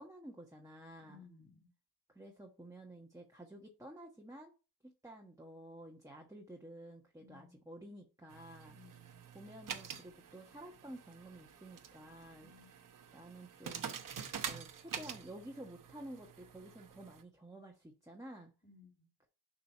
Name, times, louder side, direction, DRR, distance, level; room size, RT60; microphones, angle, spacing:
voice 1, 0.0-1.2 2.1-4.5 4.8-8.8 9.3-12.5 13.1-13.9 14.4-18.5, right 1 dB, 10° right, 1.2 m, -51 dB
voice 2, 1.1-1.7 7.2-7.6 8.6-9.2 12.4-12.7 18.6-19.1, left 4 dB, 15° left, 2.7 m, -60 dB
sound 1, 8.3-17.2, right 7 dB, 55° right, 1.0 m, -47 dB
6.9 x 2.8 x 5.5 m
cardioid pair, 55°, 40 cm